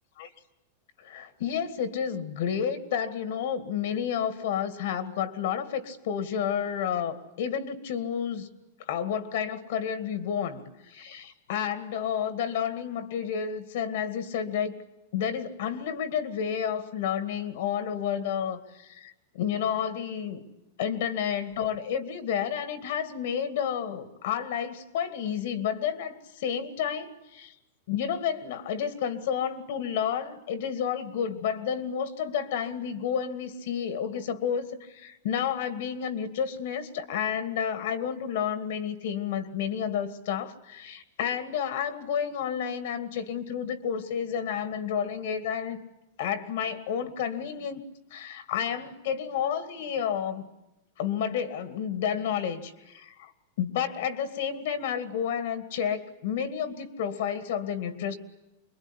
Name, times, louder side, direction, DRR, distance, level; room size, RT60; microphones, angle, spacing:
voice 1, 1.0-8.5 8.9-14.8 15.1-20.4 20.8-27.5 27.9-45.8 46.2-47.8 48.1-50.5 51.0-53.3 53.6-58.2, left 8 dB, 60° left, 10 dB, 2.2 m, -30 dB
25.5 x 22.5 x 10.0 m, 0.95 s
supercardioid pair, 165°, 0 cm